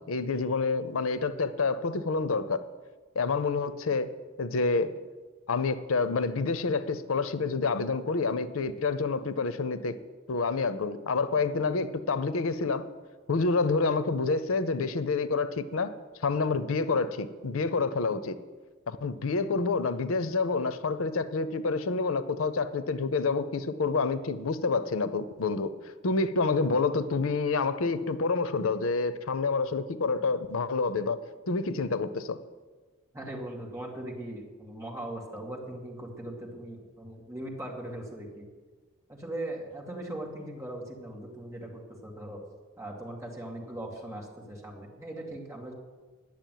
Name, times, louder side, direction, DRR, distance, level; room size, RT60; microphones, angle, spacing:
voice 1, 0.0-2.6 3.2-4.1 4.4-4.9 5.5-10.0 10.3-12.8 13.3-15.9 16.2-18.4 18.9-25.7 26.0-31.2 31.5-32.4, left 4 dB, 85° left, 13 dB, 0.7 m, -28 dB
voice 2, 33.1-38.5 39.1-42.4 42.8-45.7, right 1 dB, 15° right, -2 dB, 2.2 m, -39 dB
10.5 x 7.4 x 9.3 m, 1.4 s
head